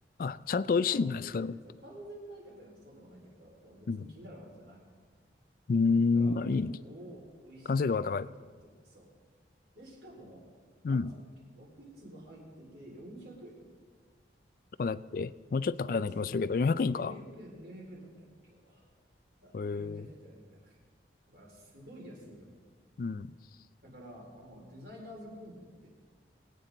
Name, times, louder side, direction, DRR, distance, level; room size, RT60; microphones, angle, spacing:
voice 1, 0.2-1.6 3.9-4.1 5.7-6.8 7.7-8.3 10.8-11.1 14.8-17.1 19.5-20.0 23.0-23.3, left 4 dB, 50° left, 16 dB, 0.3 m, -29 dB
voice 2, 0.8-4.8 6.1-9.1 9.7-10.5 10.8-11.1 11.5-13.7 15.8-16.5 16.9-18.9 19.4-20.8 21.3-22.5 23.8-25.9, equal, 70° right, -3 dB, 4.5 m, -50 dB
22.0 x 9.2 x 3.9 m, 1.6 s
head